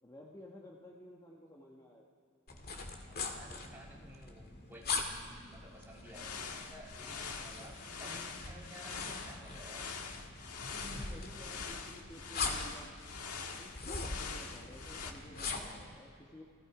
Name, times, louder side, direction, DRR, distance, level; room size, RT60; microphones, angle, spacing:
voice 1, 0.0-2.1 10.8-13.2 13.6-16.4, left 1 dB, 15° left, -2 dB, 1.5 m, -54 dB
sound 1, 2.5-15.8, left 4 dB, 45° left, 2.1 m, -42 dB
voice 2, 3.0-9.8, equal, 10° right, -3 dB, 3.3 m, -54 dB
sound 2, 6.1-15.1, left 5 dB, 80° left, 1.7 m, -44 dB
29.5 x 19.0 x 5.0 m, 2.2 s
head